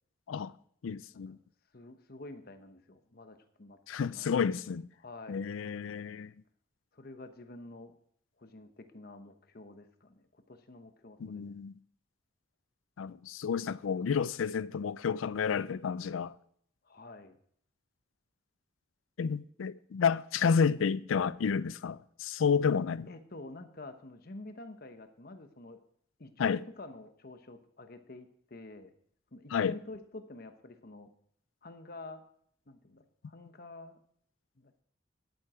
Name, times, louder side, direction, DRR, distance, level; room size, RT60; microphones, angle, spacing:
voice 1, 0.8-1.4 3.9-4.9 5.3-6.3 11.2-11.7 13.0-16.3 19.2-23.1 26.4-26.6 29.5-29.7, left 6 dB, 90° left, 0.4 m, -30 dB
voice 2, 1.7-4.4 5.0-5.4 6.9-7.9 8.4-11.5 16.8-17.4 23.1-25.8 26.2-28.9 29.3-31.1 31.6-32.2 32.7-34.0 34.6-34.8, left 2 dB, 50° left, 0.9 m, -48 dB
10.5 x 9.1 x 4.9 m
head